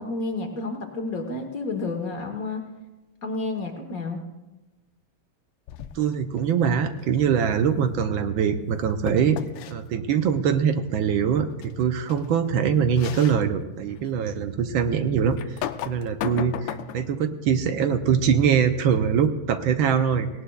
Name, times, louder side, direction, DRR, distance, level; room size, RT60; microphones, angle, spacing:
voice 1, 0.0-2.6 3.2-4.2, left 3 dB, 45° left, 3 dB, 1.5 m, -30 dB
sound 1, 5.7-6.2 9.1-9.7 11.6-11.7 12.1-12.2 12.9-13.4 14.0-14.1 15.4-17.1, left 11 dB, 70° left, 1.1 m, -34 dB
voice 2, 5.9-9.4 9.7-15.4 15.8-20.3, right 7 dB, 75° right, 9 dB, 1.4 m, -23 dB
18.5 x 18.0 x 2.3 m, 1.1 s
omnidirectional pair, 2.3 m